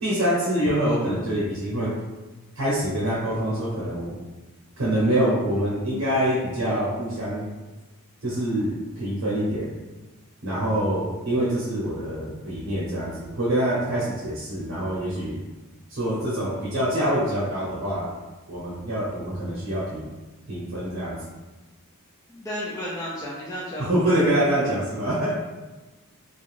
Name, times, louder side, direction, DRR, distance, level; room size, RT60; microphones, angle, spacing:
voice 1, 0.0-2.0 2.6-4.1 4.8-7.5 8.2-9.8 10.4-15.4 15.9-18.1 18.5-20.0 20.5-21.2 23.8-25.3, right 1 dB, 65° right, -7 dB, 0.7 m, -25 dB
voice 2, 22.3-23.9, equal, 15° left, -7 dB, 0.3 m, -33 dB
2.5 x 2.3 x 3.1 m, 1.2 s
head